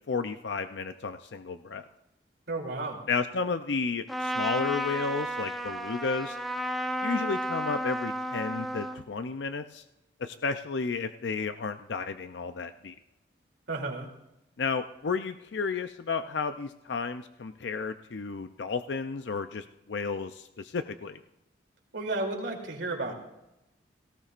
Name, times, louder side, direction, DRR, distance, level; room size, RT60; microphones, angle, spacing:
voice 1, 0.1-1.9 3.1-6.4 7.0-9.8 10.2-13.0 14.6-21.2, left 4 dB, 80° left, 9 dB, 0.5 m, -32 dB
voice 2, 2.5-3.0 13.7-14.1 21.9-23.1, right 2 dB, 90° right, 0 dB, 3.0 m, -32 dB
Trumpet, 4.1-9.0, right 1 dB, ahead, 0.6 m, -32 dB
18.0 x 16.5 x 2.5 m, 0.90 s
head